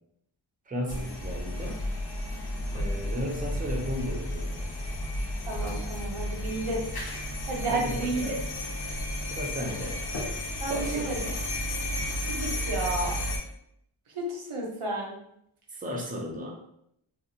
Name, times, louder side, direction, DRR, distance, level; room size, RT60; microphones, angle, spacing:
voice 1, 0.7-1.8 2.7-4.7 7.7-8.4 9.3-10.0 10.7-11.4 15.7-16.5, equal, 20° right, 0 dB, 0.5 m, -35 dB
sound 1, 0.9-13.4, left 1 dB, 50° left, 0.6 m, -33 dB
voice 2, 5.5-6.8 7.5-8.3 10.6-11.2 12.3-13.2 14.1-15.2, right 2 dB, 85° right, -1 dB, 0.7 m, -31 dB
2.6 x 2.0 x 2.8 m, 0.75 s
wide cardioid pair, 50°, 49 cm